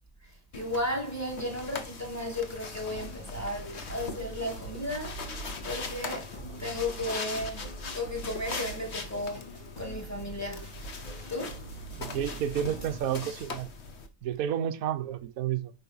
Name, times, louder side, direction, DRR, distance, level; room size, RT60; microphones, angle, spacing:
voice 1, 0.2-9.5 9.8-10.7 11.3-11.6, left 1 dB, 10° left, 1.8 m, -35 dB
sound 1, 0.5-14.1, left 4 dB, 40° left, 1.2 m, -41 dB
sound 2, 2.9-13.0, right 2 dB, 75° left, 5.0 m, -44 dB
voice 2, 11.9-13.7 14.2-15.7, right 10 dB, 55° right, 1.1 m, -31 dB
9.7 x 5.0 x 5.6 m
omnidirectional pair, 2.2 m